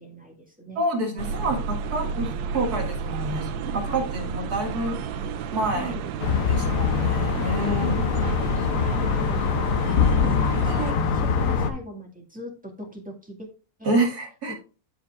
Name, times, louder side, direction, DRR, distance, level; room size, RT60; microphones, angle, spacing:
voice 1, 0.0-0.8 3.9-4.1 5.7-6.1 6.4-6.8 7.8-8.2 8.5-13.5 13.8-13.9 14.5-14.6, equal, 5° right, 0 dB, 1.7 m, -40 dB
voice 2, 0.8-5.0 5.5-5.9 6.5-8.0 13.8-14.5, right 1 dB, 55° right, 1 dB, 2.4 m, -28 dB
sound 1, 1.2-10.9, right 5 dB, 85° right, 1.4 m, -31 dB
sound 2, 6.2-11.7, left 6 dB, 55° left, 1.0 m, -23 dB
14.5 x 4.9 x 2.4 m, 0.34 s
omnidirectional pair, 2.0 m